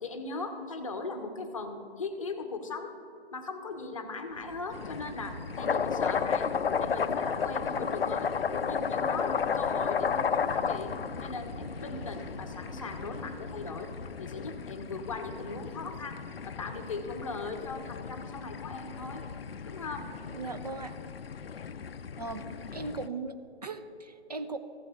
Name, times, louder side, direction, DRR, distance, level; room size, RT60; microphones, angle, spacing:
voice 1, 0.0-2.9 3.3-6.5 6.8-8.3 8.6-11.0 11.2-13.9 14.2-19.2 19.6-20.2, left 3 dB, 30° left, 6 dB, 0.8 m, -39 dB
sound 1, 4.3-14.1, equal, 5° right, 0.8 m, -47 dB
sound 2, 4.7-23.1, left 6 dB, 65° left, 0.5 m, -34 dB
voice 2, 20.3-21.0 22.2-22.4 22.7-24.6, right 3 dB, 40° right, 8 dB, 0.6 m, -38 dB
15.5 x 7.9 x 2.4 m, 2.7 s
figure-of-eight pair, 150°, 33 cm